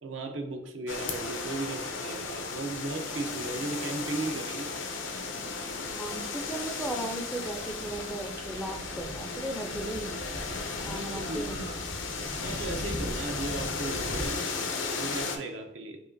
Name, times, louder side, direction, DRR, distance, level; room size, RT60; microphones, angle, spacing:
voice 1, 0.0-4.7 10.8-11.5 12.4-14.5 15.0-16.0, right 2 dB, 70° right, 5 dB, 0.6 m, -36 dB
sound 1, 0.9-15.4, left 4 dB, 80° left, 0.6 m, -35 dB
voice 2, 6.0-10.2 10.5-11.8, right 1 dB, ahead, 3 dB, 0.3 m, -37 dB
sound 2, 7.4-14.3, equal, 55° right, 1.0 m, -41 dB
4.9 x 2.8 x 2.5 m, 0.89 s
head